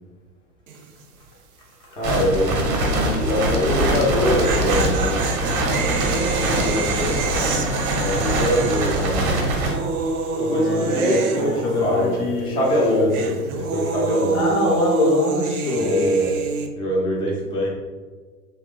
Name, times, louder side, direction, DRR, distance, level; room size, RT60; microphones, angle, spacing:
sound 1, 0.7-1.0 1.3-1.4 4.0-12.4 12.7-16.7, right 3 dB, 65° right, 0.5 m, -28 dB
voice 1, 1.9-5.2 6.0-7.0 8.0-9.5 10.3-14.4 15.7-16.3 16.8-17.7, equal, 10° left, -3 dB, 0.4 m, -23 dB
sound 2, 2.0-9.7, right 1 dB, 30° right, 0.7 m, -23 dB
voice 2, 3.4-4.0 6.4-7.3 10.5-13.3 14.3-16.1 17.5-17.6, left 1 dB, 65° left, -1 dB, 0.7 m, -25 dB
2.9 x 2.2 x 3.6 m, 1.4 s
figure-of-eight pair, 85°, 46 cm